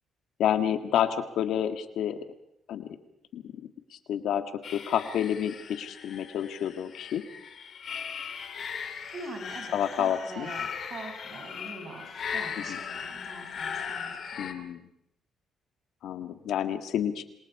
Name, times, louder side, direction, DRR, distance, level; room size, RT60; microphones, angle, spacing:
voice 1, 0.4-2.2 2.7-2.9 3.3-3.6 3.9-4.4 4.7-7.2 9.7-10.5 12.6-12.8 14.4-14.9 16.0-17.2, left 9 dB, 75° left, 8 dB, 1.9 m, -29 dB
sound 1, 4.6-14.5, left 7 dB, 55° left, 2.9 m, -38 dB
voice 2, 9.1-14.5, right 3 dB, 55° right, 3 dB, 7.7 m, -43 dB
27.5 x 23.5 x 4.9 m, 0.78 s
cardioid pair, 80°, 0 cm